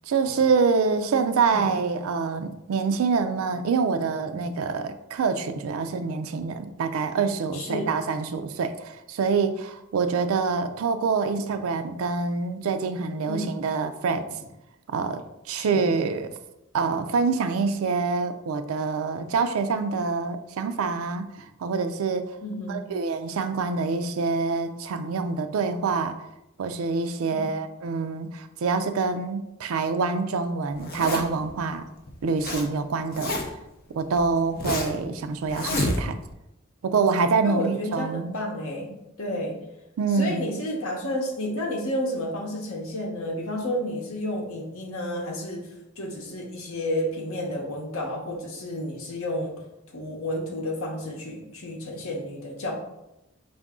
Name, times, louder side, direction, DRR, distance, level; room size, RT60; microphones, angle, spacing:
voice 1, 0.1-14.3 14.9-16.3 16.7-21.3 21.6-22.3 22.7-26.2 26.6-31.9 32.2-33.4 33.9-36.2 36.8-38.3 40.0-40.5, right 4 dB, 75° right, 9 dB, 0.4 m, -26 dB
voice 2, 7.5-7.9 13.3-13.5 15.5-15.8 22.4-22.8 27.3-27.5 37.4-38.9 39.2-39.6 40.1-45.7 46.0-49.6 49.9-52.7, left 1 dB, 75° left, 1 dB, 0.9 m, -31 dB
Zipper (clothing), 30.8-31.5 32.1-32.7 32.9-33.7 34.2-35.0 35.5-36.3, left 2 dB, 45° left, 0.6 m, -29 dB
4.7 x 2.5 x 3.6 m, 0.92 s
head